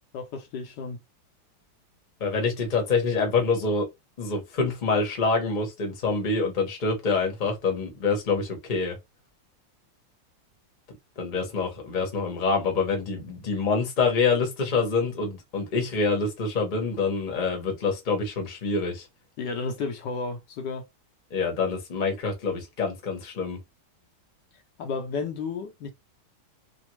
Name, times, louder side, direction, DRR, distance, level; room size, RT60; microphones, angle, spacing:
voice 1, 0.1-1.0 19.4-20.8 24.8-25.9, left 4 dB, 75° left, 1.2 m, -32 dB
voice 2, 2.2-3.9 4.2-9.0 11.2-19.0 21.3-23.6, left 4 dB, 35° left, 0.8 m, -26 dB
3.3 x 2.1 x 3.0 m
omnidirectional pair, 2.1 m